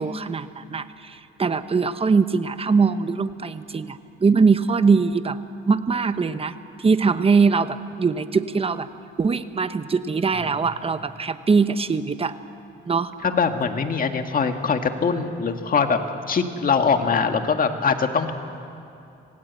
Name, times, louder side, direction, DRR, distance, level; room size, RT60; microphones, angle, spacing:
voice 1, 0.0-5.4 5.7-8.9 9.2-12.3 12.9-13.1, right 5 dB, 30° right, 11 dB, 1.1 m, -22 dB
voice 2, 13.2-16.0 16.3-18.3, left 5 dB, 45° left, 6 dB, 1.9 m, -22 dB
26.5 x 18.0 x 8.3 m, 2.7 s
cardioid pair, 90°, 20 cm